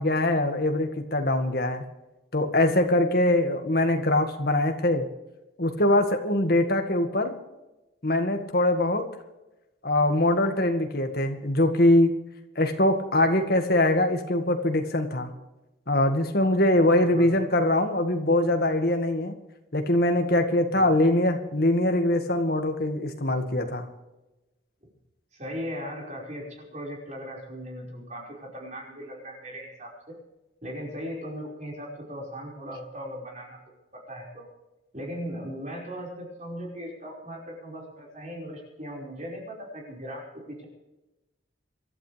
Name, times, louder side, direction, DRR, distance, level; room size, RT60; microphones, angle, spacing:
voice 1, 0.0-1.8 2.3-5.1 5.6-7.4 8.0-9.1 9.8-12.2 12.6-15.3 15.9-19.3 19.7-23.9, left 1 dB, 50° left, 5 dB, 1.9 m, -23 dB
voice 2, 25.3-30.2 30.6-33.6 34.1-34.4 34.9-40.7, equal, 35° right, -2 dB, 5.2 m, -38 dB
26.5 x 12.0 x 3.4 m, 1.0 s
head